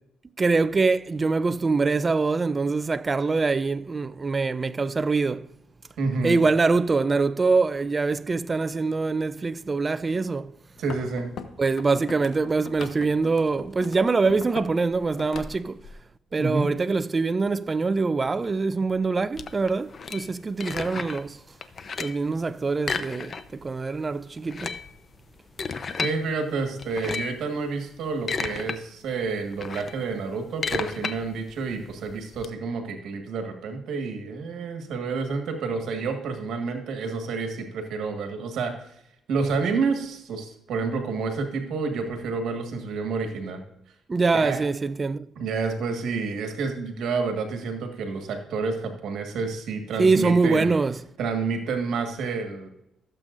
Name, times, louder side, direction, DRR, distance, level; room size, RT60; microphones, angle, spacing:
voice 1, 0.4-5.5 6.2-10.5 11.6-15.8 16.3-21.4 22.0-24.8 44.1-45.3 50.0-50.9, right 4 dB, 30° right, 0.5 m, -24 dB
voice 2, 6.0-6.4 10.8-11.3 16.4-16.7 26.0-38.7 39.3-43.6 44.3-44.6 45.3-50.7 51.2-52.7, right 4 dB, 75° right, 1.6 m, -29 dB
sound 1, 10.8-14.8 15.0-15.9, left 6 dB, 65° left, 1.2 m, -40 dB
sound 2, 19.3-21.3 21.6-22.3 22.8-23.7 23.9-24.0 24.4-26.2 26.8-27.4 28.0-28.8 29.1-32.5, left 5 dB, 45° left, 0.7 m, -33 dB
15.5 x 7.6 x 2.6 m
cardioid pair, 90°, 0 cm